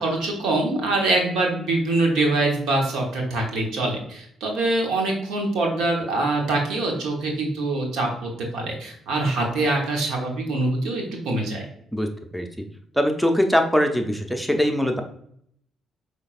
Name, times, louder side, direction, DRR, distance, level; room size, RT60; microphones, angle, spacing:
voice 1, 0.0-11.7, right 2 dB, 70° right, 1 dB, 1.1 m, -24 dB
voice 2, 13.0-15.0, equal, ahead, 4 dB, 0.7 m, -21 dB
5.4 x 3.4 x 2.5 m, 0.69 s
hypercardioid pair, 45°, 0 cm